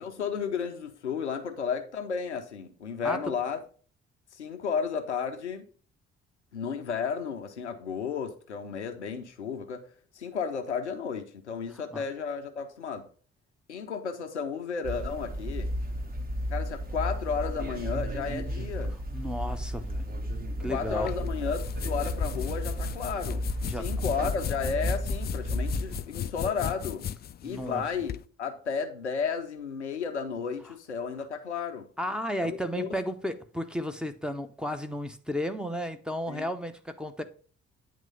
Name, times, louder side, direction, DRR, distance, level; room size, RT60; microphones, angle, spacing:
voice 1, 0.0-3.6 4.3-5.7 6.5-9.9 10.1-13.1 13.7-15.7 16.5-19.0 20.7-27.0 27.4-31.9 32.4-33.0 36.3-36.5, left 6 dB, 85° left, 0.7 m, -33 dB
sound 1, 14.8-26.0, equal, 25° right, 1.0 m, -33 dB
voice 2, 19.1-20.1 20.6-21.1 23.6-23.9 27.4-27.8 32.0-37.2, equal, 5° right, 0.7 m, -33 dB
sound 2, 21.1-28.2, left 9 dB, 30° left, 0.4 m, -36 dB
9.1 x 3.1 x 5.4 m
figure-of-eight pair, 45°, 33 cm